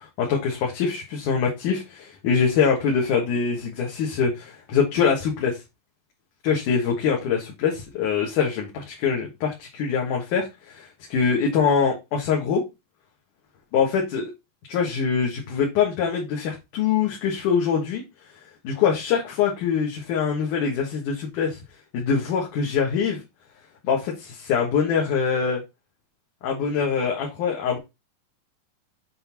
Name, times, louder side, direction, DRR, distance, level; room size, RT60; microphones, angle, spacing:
voice 1, 0.2-5.6 6.4-12.6 13.7-14.3 14.7-18.0 18.6-21.6 21.9-23.2 23.8-25.6 26.4-27.8, left 6 dB, 65° left, -1 dB, 2.9 m, -24 dB
7.8 x 3.9 x 4.4 m, 0.23 s
omnidirectional pair, 4.0 m